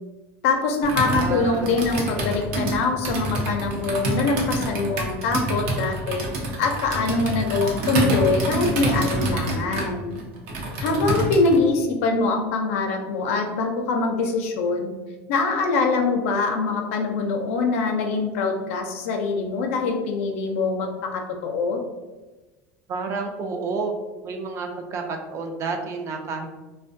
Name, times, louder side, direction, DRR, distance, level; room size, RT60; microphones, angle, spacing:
voice 1, 0.4-6.3 6.6-10.1 10.8-14.9 15.3-21.8, left 3 dB, 85° left, 3 dB, 0.4 m, -23 dB
Computer keyboard, 0.8-11.6, right 1 dB, 75° right, 0.6 m, -27 dB
voice 2, 1.0-1.7 22.9-23.9 24.2-26.5, right 4 dB, 40° right, 4 dB, 0.4 m, -30 dB
2.4 x 2.2 x 2.5 m, 1.2 s
supercardioid pair, 120°, 7 cm